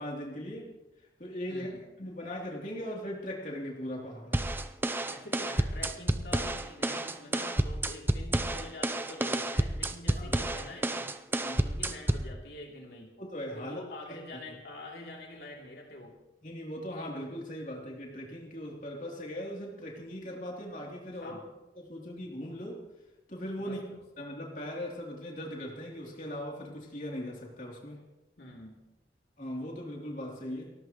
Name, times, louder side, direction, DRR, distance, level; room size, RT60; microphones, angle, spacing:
voice 1, 0.0-4.4 10.2-10.3 11.4-11.7 13.2-13.8 14.1-14.2 14.5-14.6 16.4-21.5 21.7-22.9 23.3-23.8 24.2-28.0 29.4-30.7, equal, 45° left, -2 dB, 3.1 m, -39 dB
voice 2, 1.5-1.8 5.1-11.1 11.6-13.2 13.5-16.2 21.2-21.4 23.6-24.0 28.4-28.8, left 2 dB, 70° left, -1 dB, 3.0 m, -45 dB
sound 1, 4.3-12.3, right 1 dB, 10° right, 0.6 m, -30 dB
30.0 x 14.0 x 3.1 m, 0.99 s
head